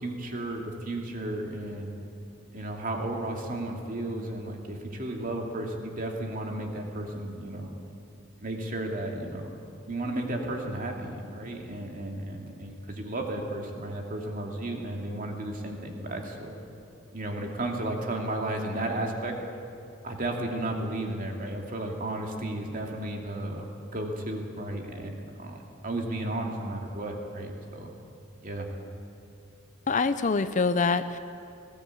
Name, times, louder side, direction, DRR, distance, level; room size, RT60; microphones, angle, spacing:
voice 1, 0.0-1.9 2.5-7.7 8.4-9.5 9.9-16.6 17.1-19.3 20.0-27.9 28.4-28.7, right 1 dB, 45° right, 1 dB, 2.5 m, -33 dB
voice 2, 29.9-31.2, left 4 dB, 40° left, 12 dB, 0.6 m, -25 dB
19.0 x 17.0 x 8.4 m, 2.6 s
head